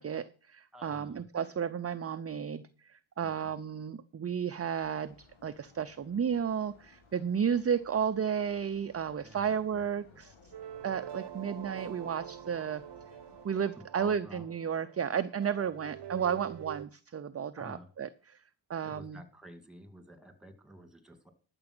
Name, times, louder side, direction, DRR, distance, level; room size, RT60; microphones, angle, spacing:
voice 1, 0.0-10.3 10.8-12.8 13.4-18.1 18.7-19.2, right 7 dB, 30° right, 11 dB, 0.5 m, -33 dB
voice 2, 0.7-1.2 3.2-3.5 9.2-9.8 10.1-10.2 13.9-14.5 17.6-17.9 18.8-21.3, equal, ahead, 7 dB, 2.2 m, -50 dB
sound 1, 4.8-13.7, left 4 dB, 80° left, 2.9 m, -60 dB
sound 2, 10.5-16.9, right 9 dB, 55° right, 0.8 m, -46 dB
12.5 x 6.9 x 6.1 m, 0.41 s
wide cardioid pair, 115°, 48 cm